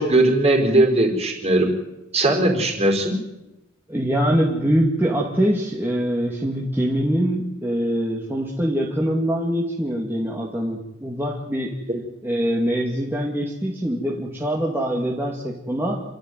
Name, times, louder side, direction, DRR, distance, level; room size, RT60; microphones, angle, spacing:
voice 1, 0.0-1.7 2.1-3.2 11.9-12.0, right 1 dB, 35° right, 3 dB, 4.8 m, -19 dB
voice 2, 3.9-11.7 12.2-16.0, equal, 10° right, -3 dB, 2.5 m, -23 dB
27.5 x 13.0 x 9.5 m, 0.96 s
head